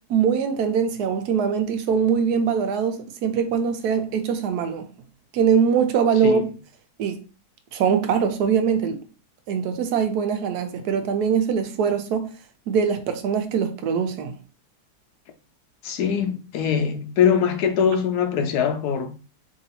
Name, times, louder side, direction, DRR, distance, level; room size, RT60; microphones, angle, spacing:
voice 1, 0.1-4.9 5.3-6.4 7.0-7.2 7.7-9.0 9.5-12.3 12.7-14.3, right 7 dB, 80° right, 1.1 m, -22 dB
voice 2, 15.8-19.1, left 7 dB, 75° left, 1.1 m, -22 dB
3.0 x 2.8 x 4.0 m
omnidirectional pair, 1.7 m